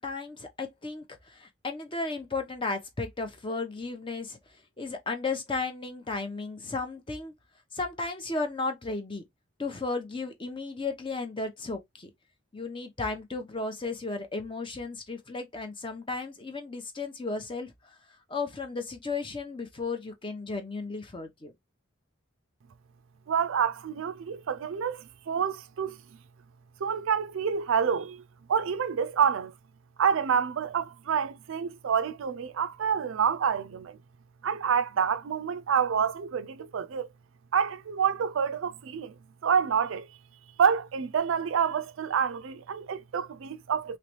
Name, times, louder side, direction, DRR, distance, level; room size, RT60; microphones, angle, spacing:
voice 1, 0.0-4.4 4.8-7.3 7.7-9.2 9.6-12.1 12.5-18.0 18.3-21.5, left 3 dB, 25° left, 0.7 m, -34 dB
voice 2, 23.3-26.0 26.8-28.2 28.5-29.5 30.0-34.0 34.4-37.1 37.5-39.1 39.4-40.1 40.6-44.0, right 7 dB, 65° right, 0.4 m, -27 dB
3.2 x 3.1 x 2.9 m
head